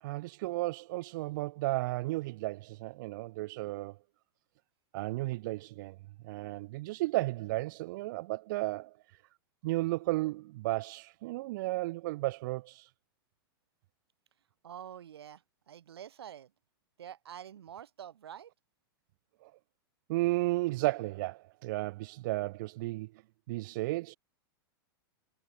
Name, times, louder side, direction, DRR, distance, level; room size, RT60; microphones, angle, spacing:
voice 1, 0.0-4.0 4.9-6.0 6.2-8.9 9.6-12.9 19.4-19.5 20.1-23.1 23.5-24.2, right 19 dB, 55° right, 0.4 m, -33 dB
voice 2, 14.6-16.5 17.0-18.5, right 9 dB, 90° right, 5.0 m, -47 dB
hypercardioid pair, 145°, 13 cm